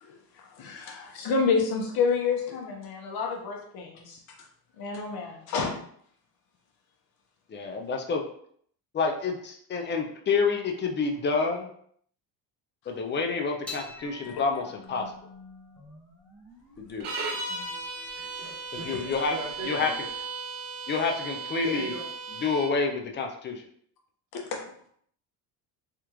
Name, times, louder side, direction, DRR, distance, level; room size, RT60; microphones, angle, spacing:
voice 1, 0.6-4.2 4.8-5.8 17.5-17.6 24.5-24.6, left 5 dB, 60° left, 1 dB, 1.0 m, -29 dB
voice 2, 7.5-8.2 8.9-11.7 12.9-15.1 16.8-17.1 18.8-19.4 19.6-19.9 20.9-21.9 22.4-23.6, left 4 dB, 30° left, 3 dB, 0.4 m, -28 dB
sound 1, 13.7-20.2, left 2 dB, 5° left, 0.7 m, -48 dB
sound 2, 17.0-22.8, right 4 dB, 75° right, 0.8 m, -36 dB
voice 3, 18.2-20.1 21.6-22.1, right 2 dB, 45° right, -4 dB, 1.0 m, -39 dB
3.5 x 2.4 x 2.9 m, 0.63 s
cardioid pair, 125°, 40 cm